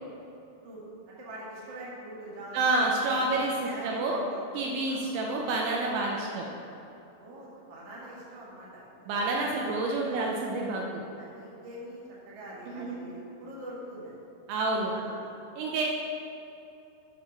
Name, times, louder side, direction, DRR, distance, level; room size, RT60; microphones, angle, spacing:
voice 1, 0.6-3.3 3.6-4.5 4.9-5.0 6.2-6.7 7.2-8.9 9.1-9.2 10.0-10.3 11.2-14.1 14.8-15.3, right 1 dB, 50° right, -7 dB, 2.0 m, -44 dB
voice 2, 2.5-4.2 4.5-6.5 9.1-11.0 12.7-13.0 14.5-14.9 15.6-15.8, right 2 dB, 80° right, -1 dB, 2.9 m, -28 dB
9.3 x 4.9 x 5.8 m, 2.8 s
omnidirectional pair, 5.6 m